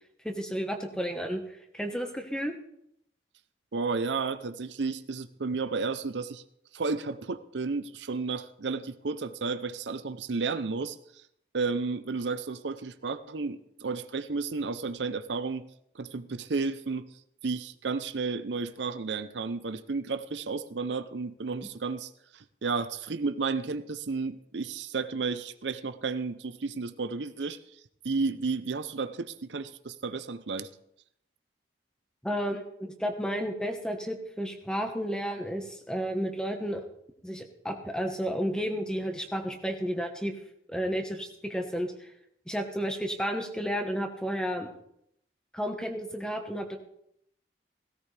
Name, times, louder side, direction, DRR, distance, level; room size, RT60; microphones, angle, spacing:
voice 1, 0.2-2.5 32.2-36.8 37.2-40.3 40.7-42.1 42.5-44.7 45.5-46.8, equal, 5° left, 4 dB, 1.2 m, -32 dB
voice 2, 3.7-6.4 6.7-11.3 11.5-15.7 15.9-30.7, right 4 dB, 85° right, 11 dB, 0.7 m, -32 dB
17.0 x 16.5 x 3.4 m, 0.75 s
head